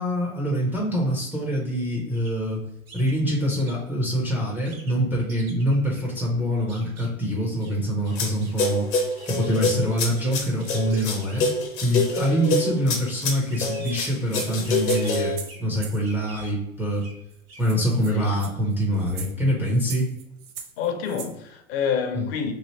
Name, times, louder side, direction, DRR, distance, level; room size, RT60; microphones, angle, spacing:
voice 1, 0.0-2.6 2.9-8.9 9.3-11.5 11.8-17.1 17.6-20.1 22.1-22.2, equal, 5° right, 0.3 m, -25 dB
sound 1, 2.2-2.3 2.9-3.8 4.6-5.0 5.3-6.0 6.7-7.1 7.6-7.8 8.0-8.7 9.0-9.6 10.2-10.3 10.6-11.7 12.4-12.7 13.5-14.0 14.3-15.2 15.5-15.6 16.0-16.5 17.0-17.2 17.5-17.6, right 3 dB, 75° right, 1.2 m, -45 dB
sound 2, 8.2-8.3 8.6-15.4, left 2 dB, 70° left, 0.9 m, -26 dB
sound 3, 13.8-16.0 17.0-17.1 17.3-17.4 17.6-21.3, right 7 dB, 55° right, 0.7 m, -41 dB
voice 2, 20.8-22.5, left 7 dB, 45° left, 0.6 m, -27 dB
3.1 x 2.5 x 2.8 m
hypercardioid pair, 100°, 41 cm